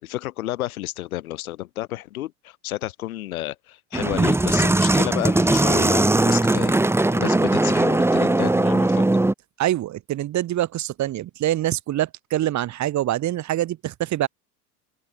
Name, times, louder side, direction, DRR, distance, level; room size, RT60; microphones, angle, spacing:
voice 1, 0.0-6.8 7.1-9.0, left 15 dB, 60° left, 4.9 m, -31 dB
sound 1, 3.9-9.3, right 2 dB, 5° right, 2.0 m, -19 dB
voice 2, 9.6-14.3, right 13 dB, 35° right, 4.8 m, -25 dB
open air
figure-of-eight pair, 80°, 47 cm